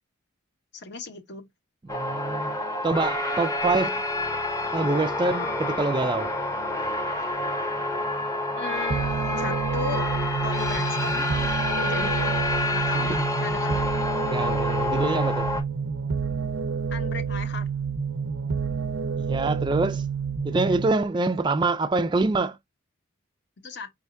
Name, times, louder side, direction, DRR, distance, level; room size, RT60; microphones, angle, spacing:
voice 1, 0.7-1.5 8.6-10.1 10.4-12.4 12.7-13.9 16.9-17.7 23.6-23.9, left 4 dB, 55° left, 1.0 m, -36 dB
sound 1, 1.9-15.6, left 2 dB, 15° left, 0.8 m, -28 dB
voice 2, 1.9-2.6 2.8-4.0 4.7-6.3 13.0-13.2 14.2-15.5 19.2-20.1 20.4-22.6, right 3 dB, 20° right, 0.3 m, -25 dB
sound 2, 8.9-20.9, right 6 dB, 75° right, 0.6 m, -29 dB
5.0 x 3.4 x 2.6 m
head